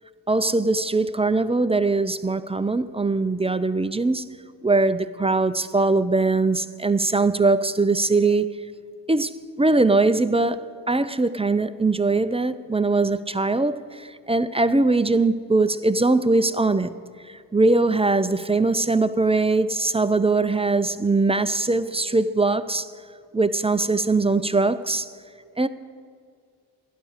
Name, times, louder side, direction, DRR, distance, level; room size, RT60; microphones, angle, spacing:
voice 1, 0.3-4.3 4.6-8.5 9.1-9.3 9.6-16.9 17.3-22.9 23.3-25.1 25.6-25.7, right 3 dB, 15° right, 0.5 m, -21 dB
12.5 x 11.0 x 6.6 m
cardioid pair, 75°, 45 cm